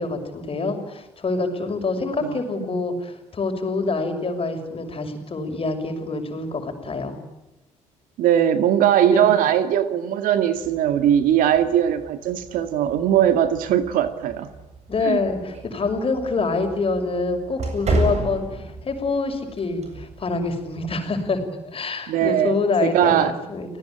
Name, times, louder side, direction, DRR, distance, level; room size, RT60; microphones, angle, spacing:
voice 1, 0.0-7.2 9.1-9.3 14.9-23.8, left 3 dB, 40° left, 6 dB, 6.4 m, -26 dB
voice 2, 8.2-14.5 15.0-15.2 22.1-23.3, right 10 dB, 70° right, 10 dB, 2.2 m, -20 dB
sound 1, 10.5-21.4, right 2 dB, 50° right, 7.9 m, -33 dB
30.0 x 19.0 x 8.8 m, 0.92 s
hypercardioid pair, 60°, 15 cm